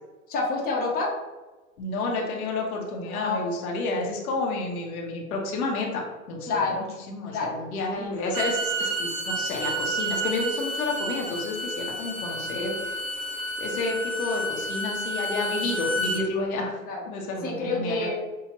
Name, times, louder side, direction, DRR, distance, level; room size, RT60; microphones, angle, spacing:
voice 1, 0.3-1.1 3.0-3.4 6.5-6.9 7.3-7.5 7.9-8.2 16.9-17.0 17.4-18.1, left 3 dB, 20° left, -3 dB, 1.0 m, -28 dB
voice 2, 1.8-12.8 13.6-16.8 17.1-18.1, left 2 dB, 70° left, 0 dB, 1.1 m, -30 dB
Bowed string instrument, 8.2-16.2, right 1 dB, 30° right, 0.6 m, -30 dB
6.2 x 2.4 x 3.0 m, 1.2 s
hypercardioid pair, 130°, 44 cm